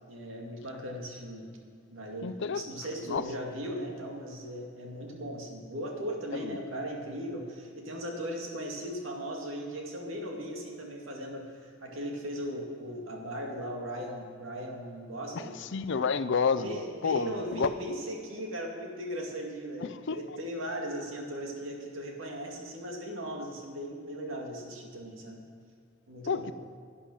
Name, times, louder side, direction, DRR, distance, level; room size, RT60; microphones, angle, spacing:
voice 1, 0.1-1.5 1.9-15.6 16.5-25.4 26.1-26.4, equal, 75° right, 0 dB, 2.2 m, -38 dB
voice 2, 2.2-2.6 3.1-3.3 6.3-6.6 15.3-17.7 19.8-20.4 26.3-26.5, left 5 dB, 65° left, 13 dB, 0.5 m, -30 dB
11.5 x 10.0 x 6.2 m, 2.3 s
head